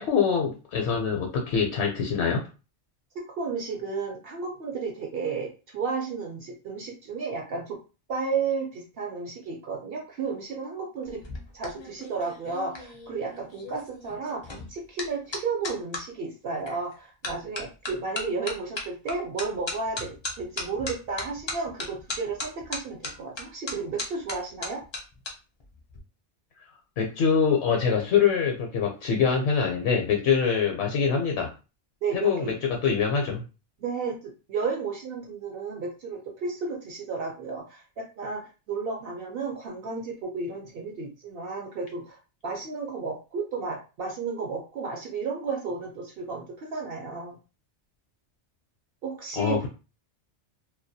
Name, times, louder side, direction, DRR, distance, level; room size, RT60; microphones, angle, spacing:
voice 1, 0.0-2.4 27.0-31.5 32.1-32.5 32.8-33.4 49.4-49.7, left 6 dB, 75° left, 2 dB, 0.8 m, -24 dB
voice 2, 3.1-7.8 8.1-11.2 11.5-24.8 32.0-32.5 33.8-47.4 49.0-49.7, right 4 dB, 65° right, 0 dB, 0.7 m, -33 dB
sound 1, 11.0-16.0 16.7-16.9 17.2-25.3 25.6-26.0, left 2 dB, 40° left, 0.4 m, -37 dB
2.2 x 2.1 x 2.6 m, 0.32 s
omnidirectional pair, 1.2 m